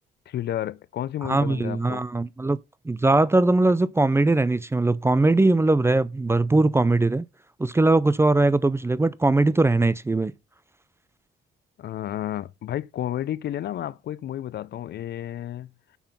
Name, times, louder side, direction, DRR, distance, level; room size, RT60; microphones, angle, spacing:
voice 1, 0.3-2.1 11.8-15.7, left 12 dB, 60° left, 0.5 m, -31 dB
voice 2, 1.2-2.6 2.9-7.2 7.6-10.3, right 2 dB, 15° right, 0.4 m, -20 dB
7.0 x 5.6 x 5.7 m
cardioid pair, 90°, 20 cm